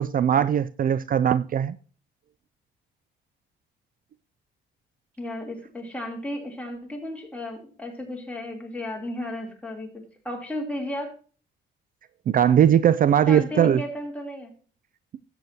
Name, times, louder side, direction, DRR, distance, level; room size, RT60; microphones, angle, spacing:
voice 1, 0.0-1.8 12.3-13.8, right 9 dB, 45° right, 0.4 m, -20 dB
voice 2, 5.2-9.9 10.2-11.2 13.3-14.5, left 1 dB, 5° left, 3.2 m, -34 dB
13.0 x 8.1 x 2.8 m
cardioid pair, 90°, 20 cm